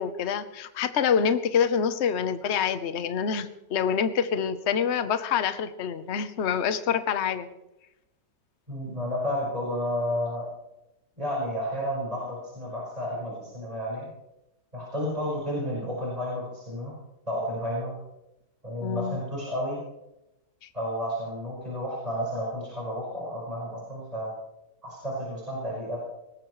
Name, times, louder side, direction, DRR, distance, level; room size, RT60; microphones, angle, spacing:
voice 1, 0.0-7.5 18.8-19.2, left 7 dB, 45° left, 11 dB, 1.1 m, -26 dB
voice 2, 8.7-10.5 11.2-14.1 14.7-16.9 17.3-17.9 18.6-19.8 20.7-24.3 24.8-26.0, equal, 20° right, -6 dB, 5.4 m, -31 dB
21.0 x 18.5 x 3.2 m, 0.91 s
omnidirectional pair, 1.9 m